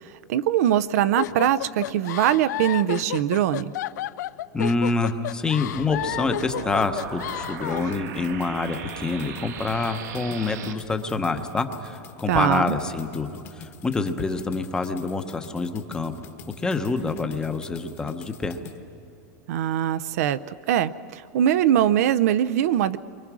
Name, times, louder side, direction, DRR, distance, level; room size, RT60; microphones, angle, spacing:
voice 1, 0.3-3.7 12.3-12.8 19.5-20.4 20.7-23.0, right 11 dB, 60° right, 15 dB, 0.6 m, -22 dB
sound 1, 1.2-8.0, left 14 dB, 80° left, 0.5 m, -31 dB
voice 2, 4.5-16.1 16.6-18.6, left 3 dB, 10° left, 7 dB, 0.8 m, -27 dB
sound 2, 5.7-10.7, right 7 dB, 85° right, 2.0 m, -38 dB
sound 3, 6.5-18.8, left 9 dB, 30° left, 1.2 m, -46 dB
29.5 x 24.0 x 6.1 m, 2.8 s
supercardioid pair, 170°, 9 cm